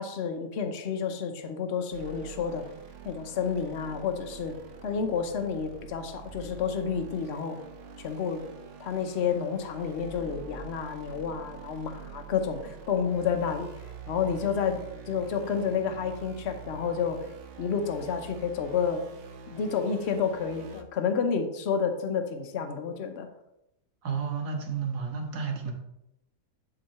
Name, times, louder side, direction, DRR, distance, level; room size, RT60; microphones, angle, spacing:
voice 1, 0.0-2.6 3.0-4.5 4.8-7.6 8.0-8.4 8.8-13.7 14.1-14.8 15.1-17.2 17.6-19.0 19.5-23.3, left 6 dB, 50° left, 5 dB, 1.0 m, -30 dB
sound 1, 1.9-20.8, right 6 dB, 55° right, 1.0 m, -46 dB
voice 2, 24.0-25.7, right 6 dB, 75° right, 1 dB, 1.8 m, -31 dB
10.5 x 3.9 x 4.2 m, 0.86 s
omnidirectional pair, 1.7 m